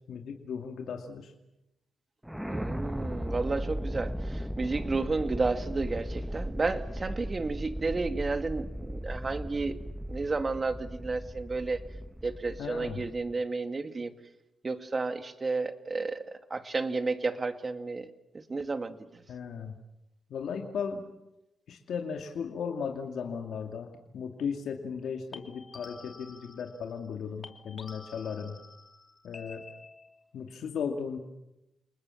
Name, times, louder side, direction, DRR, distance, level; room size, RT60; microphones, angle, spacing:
voice 1, 0.1-1.3 12.6-13.0 19.3-19.7 20.3-21.0 21.7-28.6 29.2-29.7 30.3-31.2, left 6 dB, 75° left, 3 dB, 2.5 m, -36 dB
sound 1, 2.2-13.3, equal, ahead, 1.1 m, -37 dB
voice 2, 2.4-9.8 10.1-11.8 12.2-14.1 14.6-19.0, right 3 dB, 35° right, 8 dB, 2.3 m, -32 dB
sound 2, 20.4-20.6 25.3-27.2 27.4-30.3, left 4 dB, 45° left, 2.9 m, -50 dB
29.5 x 20.5 x 7.2 m, 0.89 s
cardioid pair, 75°, 0 cm